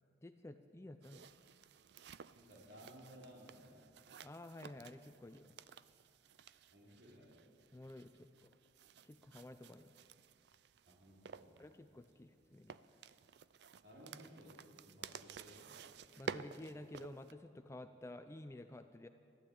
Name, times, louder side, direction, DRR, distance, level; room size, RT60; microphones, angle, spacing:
voice 1, 0.2-1.3 4.2-5.6 7.7-8.5 9.0-9.9 11.6-12.8 16.2-19.1, left 1 dB, 15° left, 9 dB, 0.4 m, -52 dB
sound 1, 1.0-17.3, right 6 dB, 60° right, 0.4 m, -53 dB
voice 2, 2.3-3.9 6.7-7.4 10.8-11.6 13.8-15.7, equal, 80° right, -5 dB, 3.8 m, -58 dB
13.0 x 12.0 x 8.8 m, 2.5 s
head